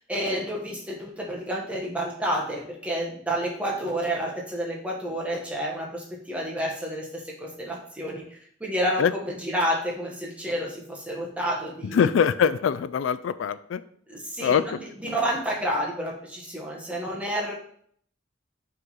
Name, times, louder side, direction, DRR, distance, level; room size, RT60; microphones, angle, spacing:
voice 1, 0.1-8.2 8.6-12.1 14.1-17.5, equal, 5° right, -3 dB, 1.4 m, -30 dB
voice 2, 11.8-13.8 14.4-14.8, left 7 dB, 80° left, 14 dB, 0.3 m, -23 dB
5.6 x 3.8 x 5.5 m, 0.62 s
head